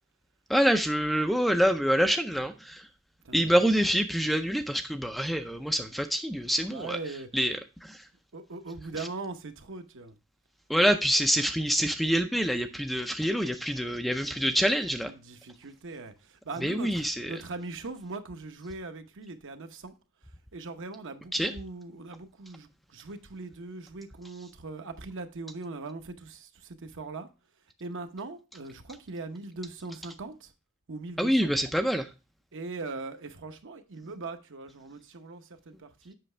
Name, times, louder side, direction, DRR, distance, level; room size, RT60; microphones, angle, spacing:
voice 1, 0.5-2.9 3.3-7.0 7.3-8.0 10.7-15.1 16.6-17.3 21.3-21.5 31.2-32.1, equal, ahead, 0.4 m, -26 dB
voice 2, 6.7-7.3 8.3-10.1 15.0-19.9 20.5-27.3 27.8-30.5 30.9-31.5 32.5-36.1, right 3 dB, 60° right, 0.8 m, -40 dB
7.7 x 5.8 x 3.2 m
head